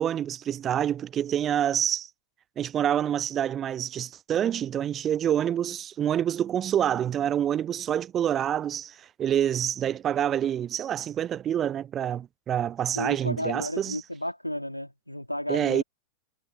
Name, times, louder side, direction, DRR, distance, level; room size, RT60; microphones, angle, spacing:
voice 1, 0.0-2.1 2.6-14.0 15.5-15.8, right 10 dB, 25° right, 0.4 m, -27 dB
voice 2, 12.9-15.8, left 1 dB, 90° left, 2.7 m, -32 dB
figure-of-eight pair, 90°, 0 cm